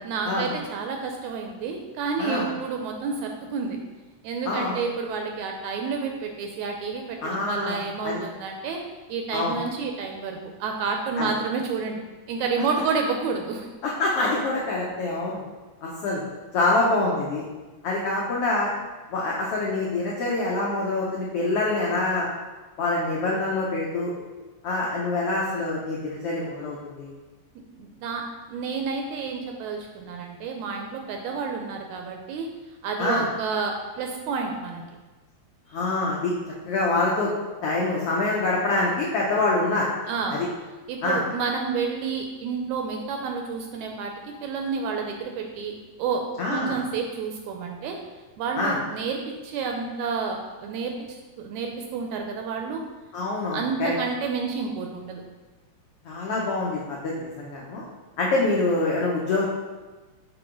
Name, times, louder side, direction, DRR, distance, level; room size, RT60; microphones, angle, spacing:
voice 1, 0.0-3.8 4.2-8.8 9.1-12.0 12.3-13.7 27.6-32.5 32.8-34.8 40.1-40.4 40.9-48.0 48.4-52.8 53.5-55.2, right 5 dB, 80° right, 3 dB, 1.7 m, -30 dB
voice 2, 2.2-2.5 4.4-4.8 7.2-8.2 9.3-9.5 11.2-11.3 13.8-15.4 15.8-16.2 16.5-17.4 17.8-18.7 19.1-22.3 22.8-24.1 24.6-27.1 33.0-33.3 35.7-36.3 36.7-37.3 37.6-39.9 40.3-40.5 41.0-41.2 46.4-46.8 48.6-48.8 53.1-53.9 56.0-57.8 58.2-59.5, left 2 dB, 90° left, -4 dB, 1.2 m, -25 dB
6.1 x 4.8 x 3.7 m, 1.3 s
omnidirectional pair, 3.7 m